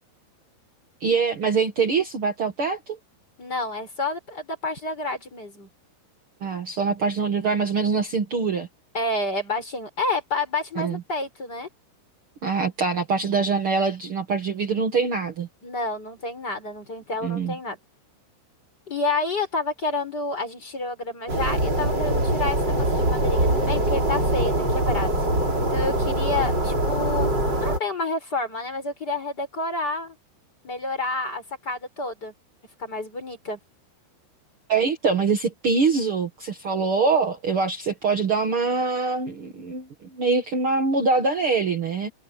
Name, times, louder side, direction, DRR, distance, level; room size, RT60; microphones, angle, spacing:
voice 1, 1.0-3.0 6.4-8.7 10.8-11.0 12.4-15.5 17.2-17.5 34.7-42.1, right 4 dB, 70° right, 1.2 m, -24 dB
voice 2, 3.4-5.7 8.9-11.7 15.6-17.8 18.9-25.1 25.7-30.2 30.6-32.3 32.8-33.6, left 2 dB, 20° left, 5.7 m, -29 dB
sound 1, 21.3-27.8, right 1 dB, 20° right, 5.2 m, -23 dB
omnidirectional pair, 5.6 m